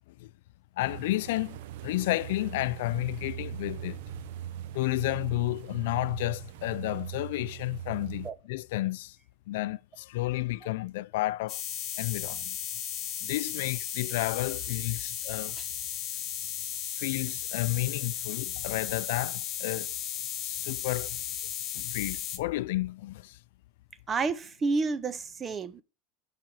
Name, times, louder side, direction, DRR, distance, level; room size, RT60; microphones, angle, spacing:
voice 1, 0.8-1.6 1.8-4.0 4.7-9.1 9.5-11.6 12.0-12.6 13.2-15.6 17.0-19.9 20.4-21.2 21.7-23.3, left 18 dB, 75° left, 0.4 m, -31 dB
sound 1, 0.8-8.3, right 11 dB, 75° right, 0.7 m, -40 dB
sound 2, 11.5-22.4, left 10 dB, 30° left, 1.3 m, -35 dB
voice 2, 24.1-25.8, right 4 dB, 20° right, 0.6 m, -30 dB
9.1 x 5.0 x 7.7 m
supercardioid pair, 160°, 0 cm